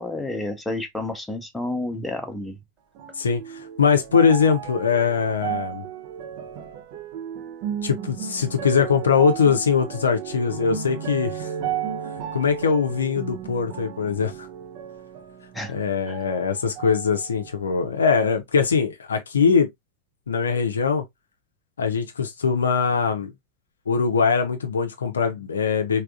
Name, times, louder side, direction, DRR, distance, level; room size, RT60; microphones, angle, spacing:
voice 1, 0.0-2.6 15.5-15.7 16.1-16.2, left 2 dB, 5° left, 0.7 m, -30 dB
sound 1, 3.0-16.4 16.8-17.7 18.4-18.5, right 9 dB, 45° right, 0.6 m, -34 dB
voice 2, 3.2-5.9 7.8-11.5 12.3-14.5 15.7-19.7 20.3-21.0 21.8-23.3 23.9-26.0, left 6 dB, 70° left, 0.5 m, -22 dB
3.4 x 2.4 x 2.4 m
figure-of-eight pair, 90°, 0 cm